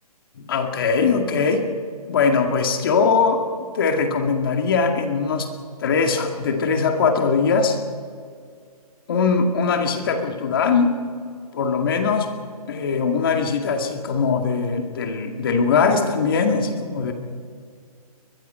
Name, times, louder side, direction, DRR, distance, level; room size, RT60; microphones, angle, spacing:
voice 1, 0.4-1.7 2.1-3.4 3.7-5.5 5.8-7.8 9.1-11.0 11.5-12.3 12.7-17.1, left 5 dB, 35° left, 4 dB, 2.1 m, -21 dB
23.0 x 21.5 x 5.6 m, 2.1 s
hypercardioid pair, 165°, 20 cm